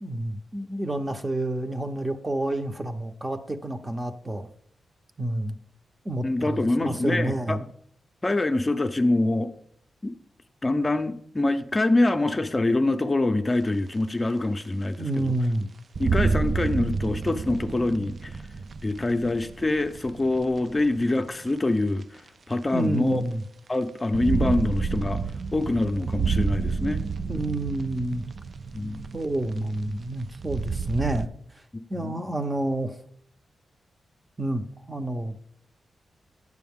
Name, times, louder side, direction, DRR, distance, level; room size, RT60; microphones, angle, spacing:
voice 1, 0.0-4.5 5.2-5.5 6.0-7.7 15.0-15.7 22.7-23.4 27.3-28.2 29.1-31.3 31.9-33.0 34.4-35.3, right 1 dB, 20° right, 0.7 m, -29 dB
voice 2, 6.2-7.6 8.2-9.5 10.0-10.1 10.6-15.3 16.0-18.3 18.8-22.2 22.5-23.2 23.7-25.2 25.5-27.0 28.7-29.1 32.0-32.2, left 2 dB, 25° left, 0.5 m, -25 dB
sound 1, 13.6-13.7 14.4-14.5 15.2-15.3 15.9-21.1 22.0-22.1 23.9-31.3, right 4 dB, 55° right, 0.3 m, -30 dB
9.3 x 6.8 x 3.6 m
cardioid pair, 70°, 0 cm